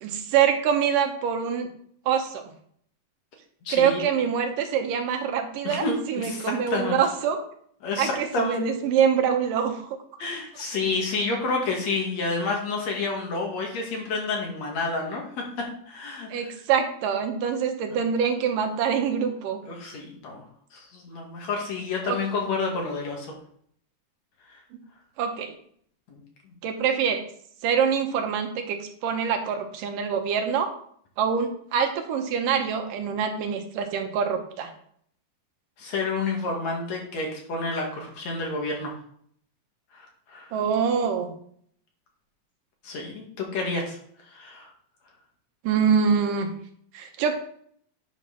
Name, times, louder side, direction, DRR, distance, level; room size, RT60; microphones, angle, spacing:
voice 1, 0.0-1.7 2.1-2.5 3.7-7.4 8.0-10.0 16.3-19.6 22.1-22.2 25.2-25.5 26.6-27.2 27.6-30.7 31.2-34.7 40.5-41.3 45.6-46.5 46.9-47.3, right 7 dB, 75° right, 5 dB, 2.5 m, -25 dB
voice 2, 3.7-4.1 5.6-7.0 7.8-8.6 10.2-16.5 19.7-20.4 20.7-23.3 26.1-26.2 26.5-26.6 35.8-39.0 39.9-40.5 42.8-44.0 44.3-44.7, left 3 dB, 60° left, 0 dB, 2.6 m, -29 dB
9.4 x 4.5 x 5.6 m, 0.63 s
omnidirectional pair, 3.9 m